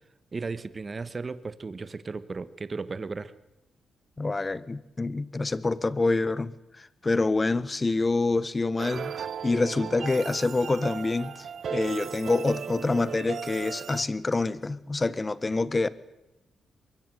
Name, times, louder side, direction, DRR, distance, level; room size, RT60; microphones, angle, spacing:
voice 1, 0.3-3.3, right 4 dB, 35° right, 1.4 m, -35 dB
voice 2, 4.2-6.5 6.8-9.1 9.4-11.5 11.7-15.9, left 3 dB, 25° left, 1.3 m, -26 dB
sound 1, 8.8-14.0, right 8 dB, 65° right, 1.1 m, -36 dB
23.5 x 22.5 x 9.3 m
cardioid pair, 100°, 0 cm